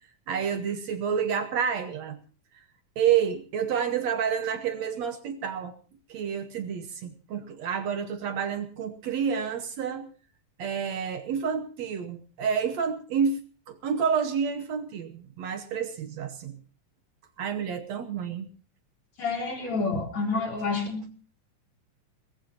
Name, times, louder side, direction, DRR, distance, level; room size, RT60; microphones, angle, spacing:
voice 1, 0.3-2.2 2.5-2.6 3.0-5.7 6.1-10.1 10.6-16.6 17.4-18.5, right 7 dB, 65° right, 8 dB, 2.1 m, -29 dB
voice 2, 19.2-21.1, left 4 dB, 45° left, 2 dB, 4.7 m, -29 dB
22.5 x 19.0 x 2.9 m, 0.37 s
omnidirectional pair, 3.5 m